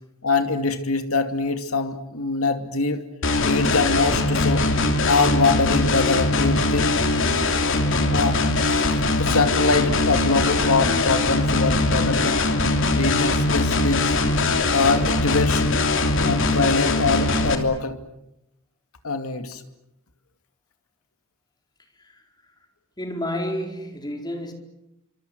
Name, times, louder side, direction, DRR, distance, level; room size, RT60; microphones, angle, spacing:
voice 1, 0.2-3.1 3.4-4.7 5.0-7.0 8.1-12.4 12.9-14.1 14.7-15.7 16.2-18.0 19.0-19.6, left 3 dB, 90° left, 2.4 m, -24 dB
sound 1, 3.2-17.6, left 2 dB, 65° left, 3.0 m, -21 dB
voice 2, 23.0-24.5, left 1 dB, 20° left, 4.4 m, -29 dB
28.5 x 26.0 x 8.0 m
head